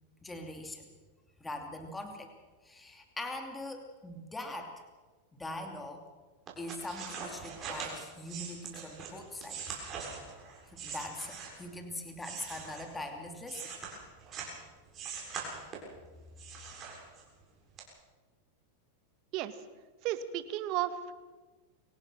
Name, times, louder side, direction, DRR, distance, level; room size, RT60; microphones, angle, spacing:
voice 1, 0.2-0.9 1.4-2.3 2.6-4.7 5.4-6.0 6.6-9.6 10.7-13.7, left 1 dB, 10° left, 4 dB, 2.7 m, -42 dB
sound 1, 6.5-11.7 12.2-14.6 14.9-16.0 16.4-17.4 17.8-17.9, right 5 dB, 35° right, 7.3 m, -42 dB
voice 2, 20.0-21.1, right 12 dB, 50° right, 11 dB, 1.7 m, -33 dB
24.0 x 17.5 x 6.3 m, 1.3 s
hypercardioid pair, 115°, 0 cm